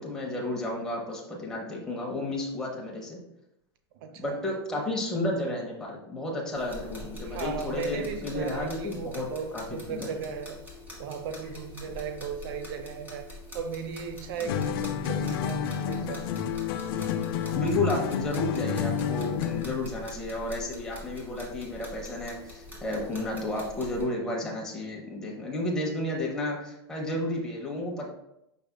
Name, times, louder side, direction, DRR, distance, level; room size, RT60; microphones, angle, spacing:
voice 1, 0.0-3.2 4.2-9.3 9.5-10.1 17.5-28.1, left 2 dB, 5° left, -3 dB, 0.7 m, -32 dB
voice 2, 3.9-4.4 4.7-4.8 7.2-10.6 11.0-13.3 13.5-16.3, right 6 dB, 60° right, 7 dB, 0.6 m, -36 dB
sound 1, 6.6-24.0, left 1 dB, 10° right, 1.2 m, -45 dB
sound 2, 14.5-19.8, left 7 dB, 60° left, 0.4 m, -30 dB
5.3 x 3.4 x 2.2 m, 0.84 s
hypercardioid pair, 125°, 14 cm